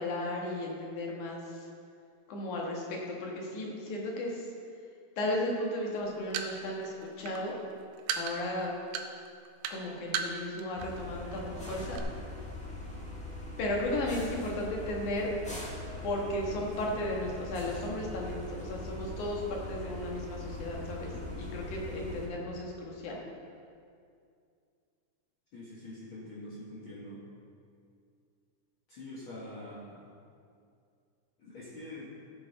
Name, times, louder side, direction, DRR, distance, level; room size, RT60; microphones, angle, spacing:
voice 1, 0.0-1.7 2.3-4.5 5.2-7.6 8.2-8.7 9.7-12.0 13.6-15.3 16.0-21.1 21.4-23.2, left 1 dB, 85° left, -2 dB, 3.0 m, -35 dB
sound 1, 6.0-10.9 11.2-11.4 11.7-12.0, right 7 dB, 85° right, 2.1 m, -35 dB
sound 2, 10.8-22.3, left 2 dB, 5° left, 0.6 m, -41 dB
voice 2, 25.5-27.2 28.9-30.1 31.4-32.1, left 1 dB, 50° left, -8 dB, 2.2 m, -45 dB
15.5 x 6.7 x 4.0 m, 2.3 s
omnidirectional pair, 3.4 m